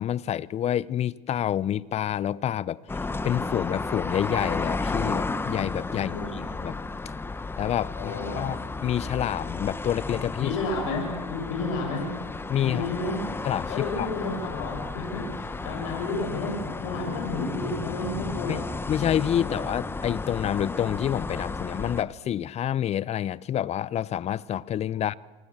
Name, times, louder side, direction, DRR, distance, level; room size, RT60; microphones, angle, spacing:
voice 1, 0.0-2.8 3.2-6.8 7.6-10.6 12.5-12.9 13.4-14.1 18.5-25.1, left 10 dB, 40° left, 0.8 m, -28 dB
sound 1, 2.9-22.0, left 3 dB, 15° left, 1.4 m, -33 dB
voice 2, 5.9-6.3 8.0-8.4 10.4-12.1 12.6-13.2 13.7-18.6 19.4-19.6 24.9-25.0, left 3 dB, 70° left, 7.2 m, -31 dB
27.0 x 26.0 x 7.5 m
supercardioid pair, 100°, 17 cm